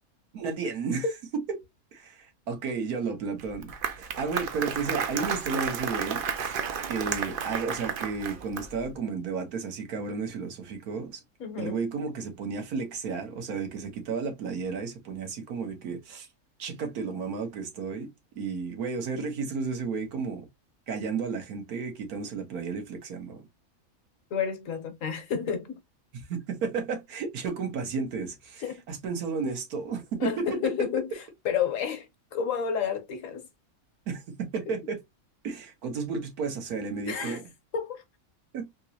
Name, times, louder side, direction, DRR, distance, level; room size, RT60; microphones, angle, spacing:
voice 1, 0.3-1.1 1.3-1.6 1.9-6.6 6.9-11.2 11.6-16.3 16.6-18.1 18.3-20.5 20.9-23.5 26.3-30.9 34.1-34.2 34.5-35.0 35.4-37.4 38.5-38.7, right 5 dB, 80° right, 1.5 m, -33 dB
Applause, 3.4-8.9, right 6 dB, 60° right, 0.5 m, -32 dB
voice 2, 11.4-11.7 24.3-25.8 28.6-28.8 30.2-33.5 34.7-34.8 37.1-37.4 37.7-38.0, left 7 dB, 65° left, 1.1 m, -30 dB
3.7 x 2.9 x 2.7 m
omnidirectional pair, 1.5 m